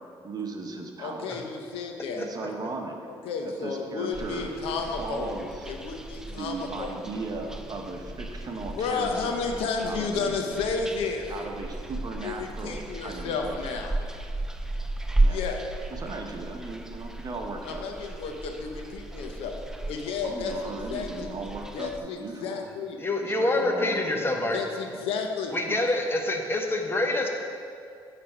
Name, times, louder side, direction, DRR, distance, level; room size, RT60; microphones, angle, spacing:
voice 1, 0.2-1.4 2.2-3.0 3.4-4.5 5.0-5.7 6.3-9.5 9.8-10.4 11.3-13.6 15.2-15.4 15.9-17.9 20.2-22.7 23.2-24.5 25.7-25.8, right 3 dB, 45° right, 3 dB, 1.0 m, -37 dB
voice 2, 1.0-2.3 3.2-5.3 5.7-6.9 8.7-11.3 12.2-14.0 15.3-15.6 17.6-19.5 19.9-20.5 20.9-21.3 21.7-23.0 24.5-25.5, left 5 dB, 80° left, 3 dB, 0.8 m, -32 dB
sound 1, 4.1-22.0, right 2 dB, 5° right, 0.4 m, -34 dB
voice 3, 23.0-24.6 25.5-27.3, left 2 dB, 25° left, 3 dB, 1.1 m, -26 dB
8.6 x 3.4 x 5.8 m, 2.4 s
supercardioid pair, 75°, 10 cm